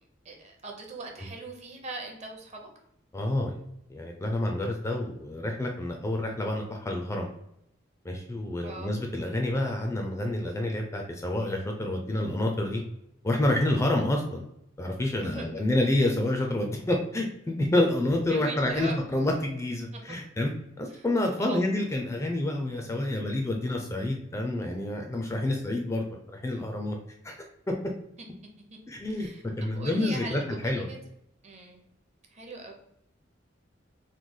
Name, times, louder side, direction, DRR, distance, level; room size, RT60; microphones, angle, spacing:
voice 1, 0.2-2.7 8.6-8.9 15.2-15.6 18.3-19.0 20.1-20.2 20.9-21.1 21.4-21.6 29.1-31.0 31.4-31.8 32.3-32.7, right 2 dB, 35° right, 2 dB, 0.6 m, -40 dB
voice 2, 3.1-3.6 3.9-7.3 8.0-12.8 13.2-14.4 14.8-20.5 20.8-26.1 26.3-27.0 27.2-27.4 27.7-27.8 28.9-29.3 29.6-30.9, left 1 dB, 15° left, 2 dB, 0.3 m, -28 dB
3.1 x 2.2 x 3.7 m, 0.78 s
head